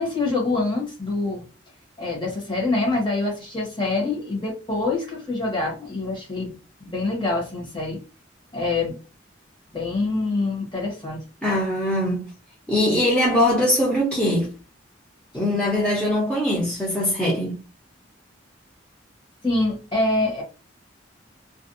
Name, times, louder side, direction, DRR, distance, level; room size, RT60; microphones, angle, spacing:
voice 1, 0.0-1.4 2.0-8.0 8.5-9.0 9.7-11.2 19.4-20.4, left 2 dB, 25° left, 1.1 m, -25 dB
voice 2, 11.4-12.3 12.7-14.5 15.3-17.5, left 1 dB, 5° left, 0.6 m, -21 dB
2.5 x 2.2 x 2.5 m
head